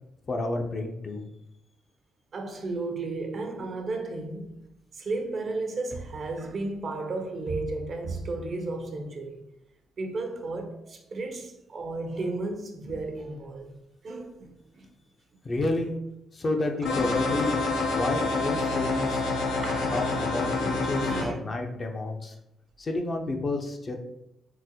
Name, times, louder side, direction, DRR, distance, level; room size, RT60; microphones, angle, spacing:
voice 1, 0.3-1.2 15.4-16.0 16.3-17.6 17.9-19.2 19.9-22.3 22.8-24.0, left 2 dB, 35° left, 0.5 m, -30 dB
voice 2, 2.3-4.6 4.9-9.4 10.0-13.8 14.0-14.9 15.6-15.7 16.8-16.9 19.6-20.2 20.6-20.7 21.1-21.4, right 3 dB, 50° right, 0.5 m, -34 dB
sound 1, 16.8-21.2, left 3 dB, 90° left, 0.5 m, -27 dB
3.8 x 2.1 x 2.8 m
cardioid pair, 90°, 0 cm